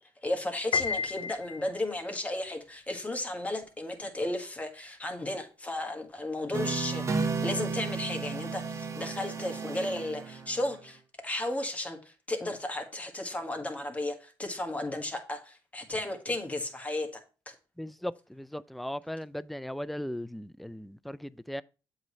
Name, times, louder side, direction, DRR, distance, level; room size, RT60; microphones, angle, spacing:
voice 1, 0.2-17.1 17.4-17.5, left 1 dB, 15° left, 1.6 m, -34 dB
Piano, 0.7-2.0, left 6 dB, 65° left, 0.5 m, -31 dB
sound 1, 6.5-10.8, right 4 dB, 35° right, 1.1 m, -33 dB
voice 2, 17.8-21.6, equal, ahead, 0.3 m, -38 dB
7.6 x 3.2 x 5.5 m
cardioid pair, 80°, 9 cm